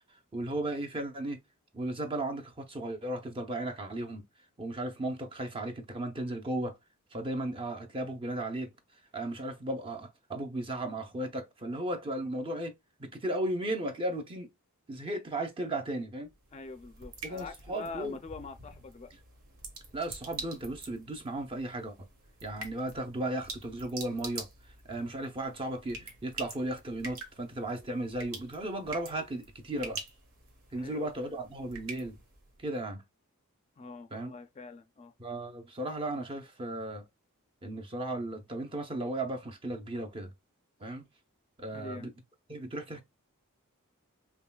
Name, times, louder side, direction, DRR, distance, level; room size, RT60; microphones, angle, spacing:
voice 1, 0.3-1.4 1.7-4.2 4.6-6.8 7.1-8.7 9.1-12.7 13.0-14.5 14.9-16.3 17.2-18.2 19.9-22.1 22.4-24.5 24.8-30.0 30.7-32.2 32.6-33.0 34.1-34.3 35.2-37.0 37.6-40.3 40.8-41.1 41.6-42.1 42.5-43.0, right 1 dB, 25° right, 0.6 m, -35 dB
sound 1, 16.2-32.7, right 3 dB, 80° right, 1.3 m, -46 dB
voice 2, 16.5-19.1 30.8-31.1 33.8-35.1 41.7-42.1, left 3 dB, 30° left, 0.4 m, -44 dB
5.5 x 2.2 x 2.3 m
head